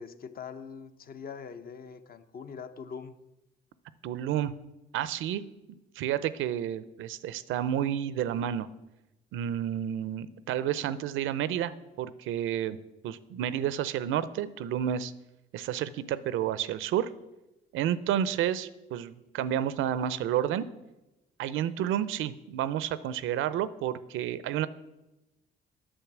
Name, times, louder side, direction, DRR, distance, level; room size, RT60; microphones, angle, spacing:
voice 1, 0.0-3.1, left 6 dB, 50° left, 10 dB, 0.7 m, -42 dB
voice 2, 4.0-4.5 4.9-5.4 6.0-8.7 9.3-11.7 12.0-12.8 13.0-15.1 15.5-17.1 17.7-20.7 21.4-24.7, right 10 dB, 85° right, 16 dB, 0.5 m, -30 dB
8.9 x 6.8 x 6.0 m, 0.99 s
cardioid pair, 90°, 20 cm